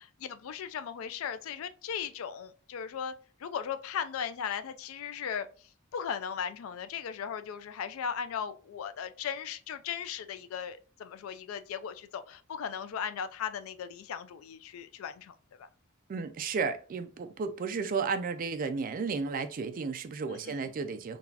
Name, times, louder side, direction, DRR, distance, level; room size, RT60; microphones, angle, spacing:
voice 1, 0.2-3.1 3.4-15.7 20.3-20.7, left 7 dB, 70° left, 0.3 m, -37 dB
voice 2, 16.1-21.2, right 5 dB, 40° right, 0.3 m, -33 dB
3.8 x 2.3 x 2.7 m
head